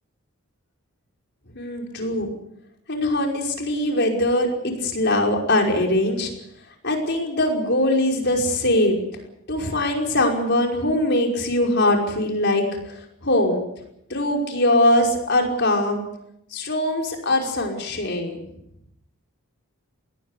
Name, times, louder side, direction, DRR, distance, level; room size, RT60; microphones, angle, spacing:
voice 1, 1.6-2.3 2.9-6.3 6.8-9.0 9.5-12.6 13.2-13.6 14.1-16.1 16.5-18.4, left 1 dB, 55° left, 2 dB, 5.4 m, -21 dB
21.5 x 18.5 x 8.4 m, 0.78 s
head